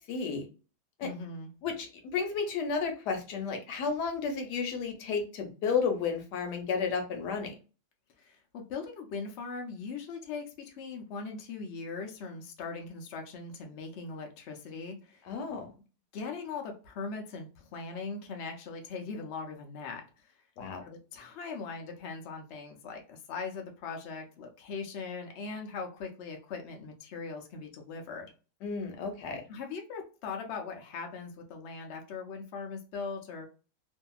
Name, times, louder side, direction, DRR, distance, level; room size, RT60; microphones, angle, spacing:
voice 1, 0.1-0.5 1.0-1.1 1.6-7.5 15.2-15.7 20.6-20.8 28.6-29.4, left 5 dB, 85° left, 4 dB, 1.3 m, -32 dB
voice 2, 1.0-1.5 8.2-15.3 16.1-20.3 20.8-28.3 29.5-33.5, left 4 dB, 60° left, 2 dB, 0.7 m, -40 dB
2.7 x 2.6 x 2.3 m, 0.35 s
omnidirectional pair, 1.8 m